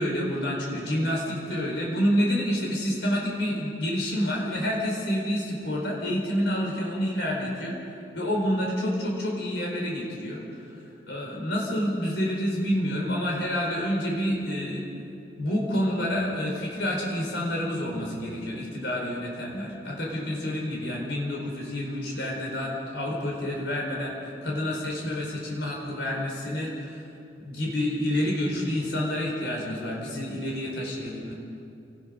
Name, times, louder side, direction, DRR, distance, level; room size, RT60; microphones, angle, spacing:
voice 1, 0.0-7.7 8.1-10.4 11.1-14.9 15.4-27.0 27.4-31.3, equal, 75° left, -2 dB, 4.6 m, -28 dB
28.5 x 19.5 x 5.3 m, 2.8 s
head